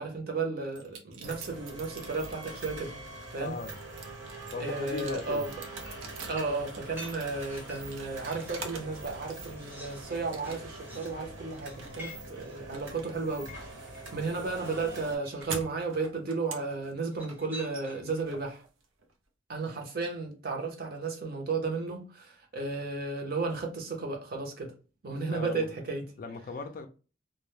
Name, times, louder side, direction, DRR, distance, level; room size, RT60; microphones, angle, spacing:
voice 1, 0.0-2.9 3.3-3.6 4.6-5.5 6.3-18.6 19.5-24.7 25.0-26.1, right 3 dB, 50° right, 0.6 m, -34 dB
sound 1, 0.7-2.7 3.2-9.0 9.3-9.9 10.3-10.9 11.2-19.1, right 5 dB, 90° right, 0.6 m, -46 dB
sound 2, 1.2-15.2, right 2 dB, 70° right, 1.1 m, -44 dB
voice 2, 3.4-3.7 4.5-5.5 25.1-25.7 26.2-26.9, left 4 dB, 45° left, 0.3 m, -38 dB
sound 3, 5.8-8.7 9.1-14.2 15.2-15.8 17.1-18.2, equal, 10° right, 0.6 m, -49 dB
2.1 x 2.0 x 3.0 m
head